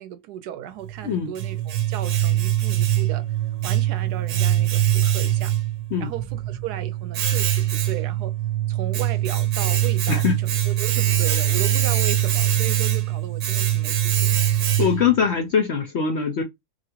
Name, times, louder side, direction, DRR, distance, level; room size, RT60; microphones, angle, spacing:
voice 1, 0.0-3.2 3.6-5.5 6.0-8.3 8.7-14.4, right 11 dB, 80° right, 1.1 m, -35 dB
Domestic sounds home sounds, 0.8-15.2, right 12 dB, 60° right, 0.9 m, -23 dB
voice 2, 10.1-10.4 14.8-16.4, left 7 dB, 65° left, 0.7 m, -22 dB
3.0 x 2.4 x 2.8 m
omnidirectional pair, 1.7 m